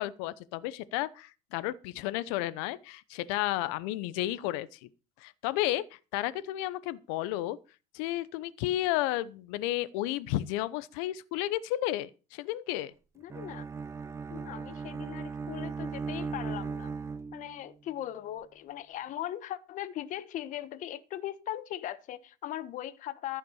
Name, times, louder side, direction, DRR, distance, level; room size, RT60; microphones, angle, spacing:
voice 1, 0.0-4.8 5.2-5.8 6.1-7.6 7.9-12.9, left 15 dB, 80° left, 0.9 m, -32 dB
voice 2, 13.2-13.6 14.3-16.9 17.3-23.4, left 12 dB, 55° left, 1.2 m, -39 dB
Bowed string instrument, 13.3-17.7, right 5 dB, 15° right, 0.6 m, -37 dB
14.5 x 5.9 x 6.4 m
supercardioid pair, 115°, 16 cm